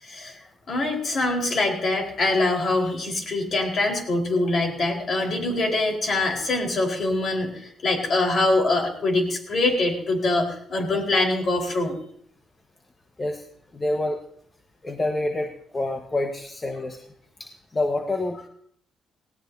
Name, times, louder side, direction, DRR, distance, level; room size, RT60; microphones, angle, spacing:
voice 1, 0.0-11.9, left 2 dB, 50° left, 1 dB, 4.4 m, -24 dB
voice 2, 13.7-14.2 14.8-17.0 17.4-18.5, left 2 dB, 25° left, 3 dB, 1.3 m, -27 dB
18.5 x 17.0 x 2.8 m, 0.65 s
cardioid pair, 90°, 0 cm